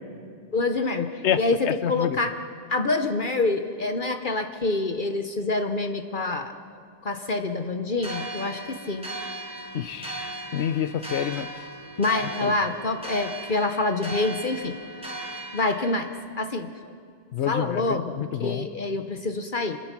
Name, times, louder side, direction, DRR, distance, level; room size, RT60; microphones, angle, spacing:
voice 1, 0.5-2.3 2.7-6.5 7.0-9.1 12.0-14.7 15.5-17.0 17.5-19.8, left 3 dB, 50° left, 6 dB, 1.0 m, -26 dB
voice 2, 1.2-2.2 9.7-11.5 12.4-12.5 17.3-18.7, left 9 dB, 75° left, 14 dB, 1.0 m, -28 dB
sound 1, 8.0-16.2, right 1 dB, 5° right, 5.3 m, -37 dB
27.0 x 21.0 x 6.0 m, 2.2 s
omnidirectional pair, 1.2 m